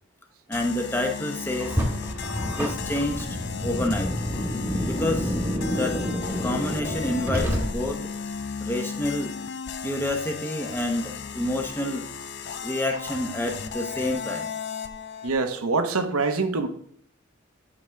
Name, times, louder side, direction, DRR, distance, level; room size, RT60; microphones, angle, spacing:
sound 1, 0.5-15.3, left 6 dB, 55° left, 0.5 m, -36 dB
voice 1, 0.5-1.8 2.4-3.3 3.6-4.1 4.8-5.4 5.6-6.0 6.4-8.1 8.6-9.3 9.8-12.0 12.6-14.5, left 1 dB, 10° left, 3 dB, 0.7 m, -28 dB
Car, 1.6-8.1, equal, 10° right, 1.2 m, -28 dB
voice 2, 15.2-16.7, right 3 dB, 85° right, 8 dB, 0.9 m, -24 dB
9.9 x 5.0 x 3.3 m, 0.65 s
head